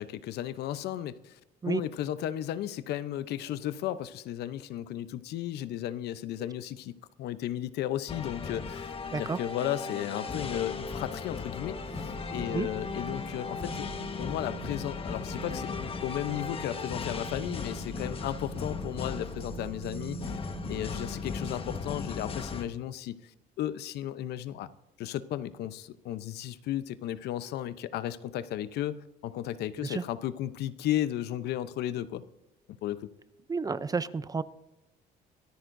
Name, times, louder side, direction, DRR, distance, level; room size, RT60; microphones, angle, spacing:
voice 1, 0.0-1.4 1.6-6.9 7.2-13.9 14.2-15.7 16.0-20.4 20.7-23.3 23.6-24.7 25.0-32.2 32.8-33.1, left 12 dB, 75° left, 14 dB, 0.8 m, -34 dB
sound 1, 8.1-22.6, left 5 dB, 35° left, 1.4 m, -37 dB
Wind, 11.7-21.7, right 3 dB, 60° right, 3.3 m, -44 dB
voice 2, 33.5-34.4, right 4 dB, 20° right, 15 dB, 0.5 m, -30 dB
23.5 x 14.0 x 2.6 m, 0.91 s
cardioid pair, 110°, 17 cm